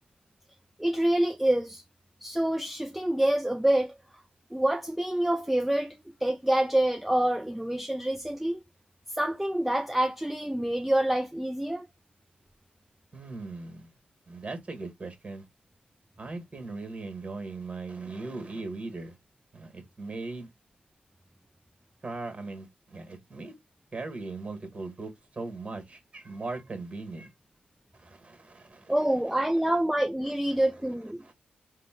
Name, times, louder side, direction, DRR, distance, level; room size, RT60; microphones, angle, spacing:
voice 1, 0.8-1.8 2.2-3.9 4.5-8.6 9.1-11.9 28.9-31.2, right 1 dB, 5° right, 0.4 m, -26 dB
voice 2, 13.1-13.9 14.3-15.4 16.2-19.2 19.5-20.5 22.0-23.5 23.9-27.3 28.0-28.9 31.2-31.3, right 3 dB, 35° right, 1.5 m, -39 dB
3.6 x 2.2 x 3.7 m
cardioid pair, 75°, 3 cm